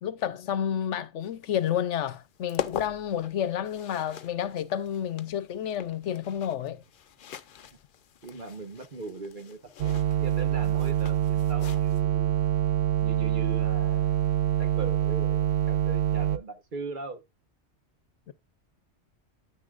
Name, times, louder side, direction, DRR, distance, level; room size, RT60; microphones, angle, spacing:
voice 1, 0.0-6.8 18.3-18.4, left 9 dB, 85° left, 1.1 m, -30 dB
sound 1, 1.2-12.0, left 10 dB, 55° left, 0.7 m, -42 dB
voice 2, 8.2-12.3 13.0-14.3 14.6-17.2, right 3 dB, 45° right, 1.2 m, -40 dB
sound 2, 9.8-16.4, right 11 dB, 75° right, 0.9 m, -25 dB
9.8 x 9.5 x 2.4 m
omnidirectional pair, 1.2 m